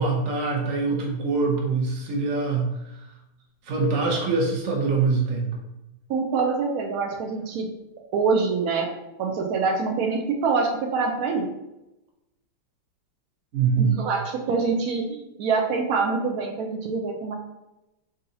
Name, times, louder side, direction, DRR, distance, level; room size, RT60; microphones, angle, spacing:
voice 1, 0.0-2.7 3.7-5.5 13.5-13.9, right 4 dB, 55° right, 0 dB, 1.0 m, -24 dB
voice 2, 6.1-7.7 8.1-8.9 9.2-11.5 13.8-17.3, right 4 dB, 85° right, 1 dB, 0.8 m, -25 dB
3.9 x 3.9 x 2.6 m, 0.94 s
omnidirectional pair, 2.1 m